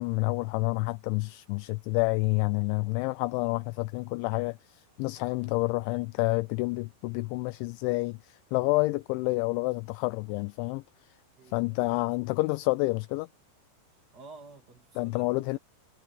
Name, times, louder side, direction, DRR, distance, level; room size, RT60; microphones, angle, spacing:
voice 1, 0.0-10.8 11.5-13.3 15.0-15.6, left 24 dB, 85° left, 2.8 m, -29 dB
voice 2, 5.3-5.6 8.9-9.0 11.4-11.9 13.9-15.6, right 3 dB, 30° right, 1.9 m, -52 dB
omnidirectional pair, 5.6 m